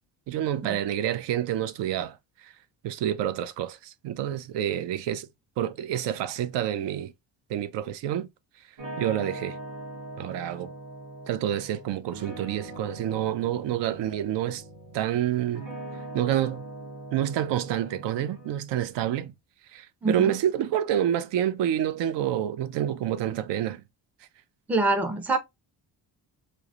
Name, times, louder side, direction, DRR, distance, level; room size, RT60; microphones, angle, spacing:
voice 1, 0.3-2.2 2.4-2.5 2.8-5.3 5.6-7.1 7.5-8.3 9.0-9.6 10.2-10.7 11.3-14.6 14.9-15.7 16.1-16.6 17.1-19.3 19.7-23.8, right 11 dB, 70° right, 0.5 m, -28 dB
sound 1, 8.8-18.5, right 1 dB, 45° right, 1.2 m, -41 dB
voice 2, 20.0-20.4 24.7-25.4, right 2 dB, 5° right, 0.4 m, -25 dB
3.0 x 2.0 x 2.4 m
cardioid pair, 120°, 44 cm